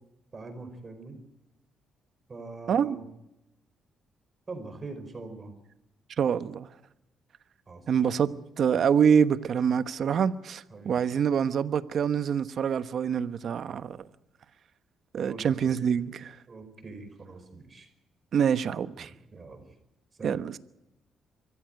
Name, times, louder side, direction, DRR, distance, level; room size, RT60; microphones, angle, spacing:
voice 1, 0.3-1.2 2.3-3.0 4.5-5.5 7.7-8.2 10.7-11.0 15.2-15.7 16.5-17.9 19.0-19.6 20.2-20.4, right 3 dB, 35° right, 5.0 m, -43 dB
voice 2, 6.2-6.7 7.9-8.3 8.6-14.0 15.1-16.4 18.3-19.1 20.2-20.6, right 7 dB, 60° right, 1.1 m, -25 dB
24.0 x 14.5 x 9.1 m
cardioid pair, 90°, 0 cm